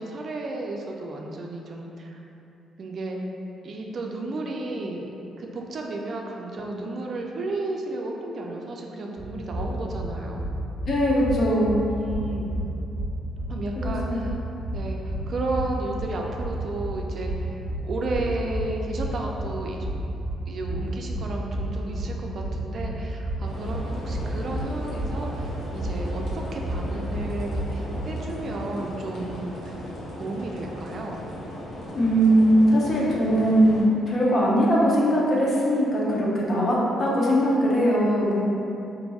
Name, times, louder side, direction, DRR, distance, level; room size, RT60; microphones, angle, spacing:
voice 1, 0.0-2.2 2.8-3.2 3.6-5.1 5.4-10.5 11.9-12.5 13.5-14.4 14.7-17.6 17.8-19.9 20.5-29.8 30.2-31.2, right 2 dB, 55° right, 0 dB, 0.3 m, -33 dB
sound 1, 9.2-28.0, right 1 dB, ahead, 1.1 m, -31 dB
voice 2, 10.9-11.8 13.8-14.2 31.9-38.4, equal, 50° left, -5 dB, 0.7 m, -21 dB
sound 2, 23.4-33.8, left 1 dB, 75° left, 0.8 m, -37 dB
3.9 x 2.6 x 2.3 m, 2.9 s
cardioid pair, 90°, 0 cm